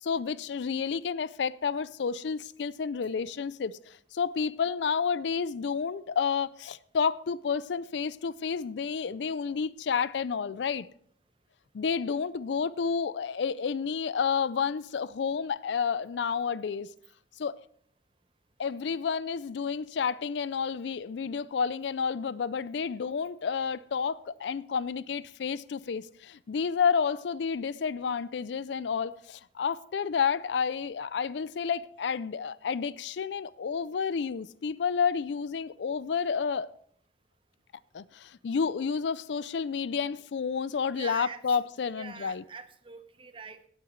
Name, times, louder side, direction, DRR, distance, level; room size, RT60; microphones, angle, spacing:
voice 1, 0.0-10.9 11.7-16.9 17.4-17.5 18.6-36.7 37.9-42.4, left 6 dB, 80° left, 0.4 m, -30 dB
voice 2, 40.9-41.6 41.9-43.7, right 5 dB, 30° right, 0.8 m, -44 dB
17.0 x 8.7 x 3.2 m
head